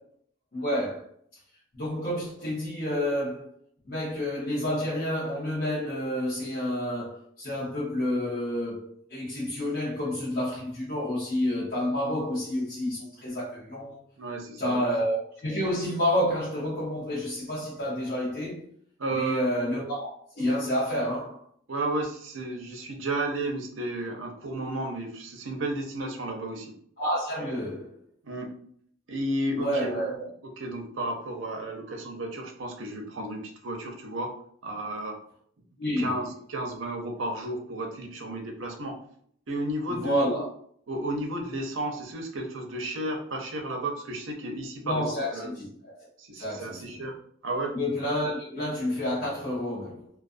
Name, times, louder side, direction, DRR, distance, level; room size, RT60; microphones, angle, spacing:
voice 1, 0.5-1.1 1.7-3.5 3.8-14.0 14.6-18.6 19.1-20.1 20.4-21.4 27.0-28.0 29.5-30.3 35.8-36.2 40.0-40.5 44.8-46.1 46.4-47.1 47.7-50.1, equal, 45° left, 0.8 m, -29 dB
voice 2, 14.2-14.8 19.0-19.4 21.7-26.7 28.2-28.5 29.1-30.2 30.6-34.3 34.6-35.2 36.0-39.0 39.5-40.4 40.9-45.1 45.3-45.5 46.2-47.1 47.4-47.7, right 1 dB, 75° right, 0.6 m, -33 dB
2.4 x 2.3 x 2.5 m
head